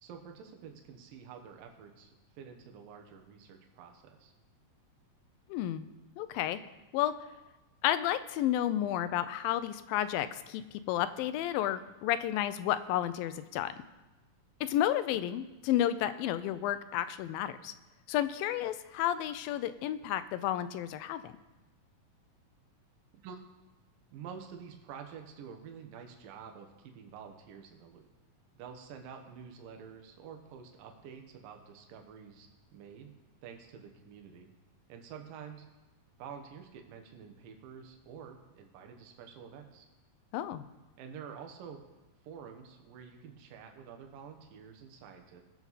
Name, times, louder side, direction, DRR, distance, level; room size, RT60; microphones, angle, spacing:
voice 1, 0.0-4.3 23.2-23.4 24.1-28.1 28.5-33.1 33.4-34.5 34.9-35.6 36.2-39.9 41.0-41.8 42.2-45.4, right 7 dB, 75° right, 4 dB, 2.8 m, -48 dB
voice 2, 5.5-5.9 6.2-6.6 6.9-7.1 7.8-13.7 14.6-17.7 18.1-21.3 40.3-40.7, left 12 dB, 90° left, 12 dB, 2.4 m, -31 dB
19.5 x 7.3 x 4.1 m, 1.1 s
omnidirectional pair, 4.0 m